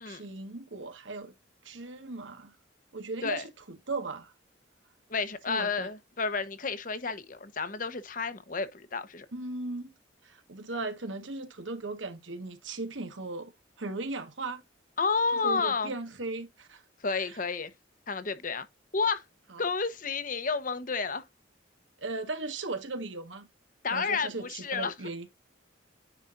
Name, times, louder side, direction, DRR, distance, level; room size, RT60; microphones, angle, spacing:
voice 1, 0.0-1.3 1.6-2.5 2.9-4.3 5.5-5.9 9.3-9.9 10.2-13.5 13.8-14.6 15.4-16.8 17.1-17.4 19.5-19.6 22.0-23.5 23.9-25.3, right 3 dB, 90° right, 1.5 m, -37 dB
voice 2, 5.1-9.3 15.0-15.9 17.0-17.7 18.1-18.7 18.9-19.2 19.6-21.2 23.8-24.9, left 4 dB, 45° left, 1.0 m, -31 dB
9.7 x 5.0 x 2.6 m
head